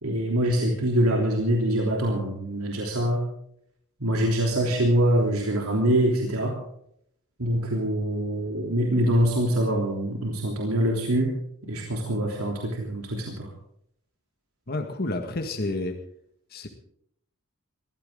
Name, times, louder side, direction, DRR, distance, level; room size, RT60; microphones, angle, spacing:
voice 1, 0.0-3.2 4.0-6.5 7.4-11.4 11.6-13.5, right 1 dB, 85° right, 0 dB, 3.2 m, -24 dB
voice 2, 14.7-16.0 16.5-16.7, left 2 dB, 45° left, 3 dB, 1.8 m, -30 dB
22.0 x 16.0 x 3.8 m, 0.69 s
head